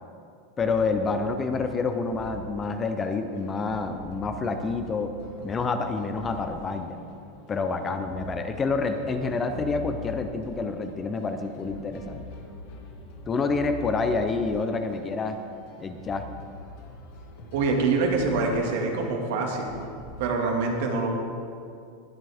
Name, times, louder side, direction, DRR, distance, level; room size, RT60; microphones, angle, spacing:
sound 1, 0.6-20.3, left 2 dB, 55° left, 2.0 m, -44 dB
voice 1, 0.6-5.1 5.4-7.0 7.5-12.2 13.3-15.4 15.8-16.2, left 4 dB, 15° left, 7 dB, 0.5 m, -28 dB
voice 2, 17.5-19.8 20.2-21.1, right 3 dB, 60° right, 1 dB, 1.9 m, -25 dB
20.0 x 7.7 x 3.5 m, 2.5 s
supercardioid pair, 170°, 0 cm